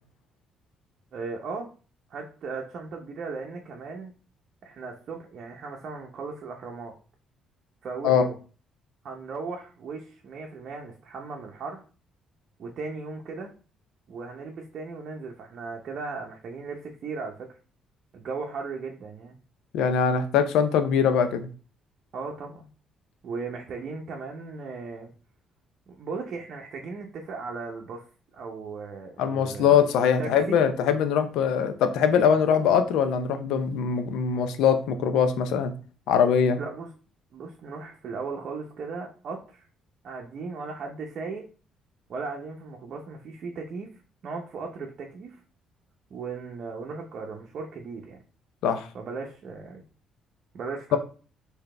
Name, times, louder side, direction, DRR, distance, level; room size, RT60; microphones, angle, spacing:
voice 1, 1.1-1.7 2.1-4.1 4.6-6.9 7.8-8.4 9.0-11.8 12.6-13.5 14.1-17.5 18.1-19.4 22.1-22.7 23.2-25.1 25.9-28.0 28.3-29.8 30.2-30.6 36.6-36.9 37.3-39.7 40.0-41.4 42.1-43.9 44.2-45.4 46.1-48.2 48.9-49.8 50.5-51.0, right 4 dB, 60° right, 1 dB, 0.7 m, -37 dB
voice 2, 19.7-21.5 29.2-35.7 36.1-36.6 48.6-48.9 50.9-51.0, left 7 dB, 80° left, 9 dB, 0.5 m, -22 dB
3.9 x 2.8 x 3.3 m, 0.38 s
supercardioid pair, 75°, 0 cm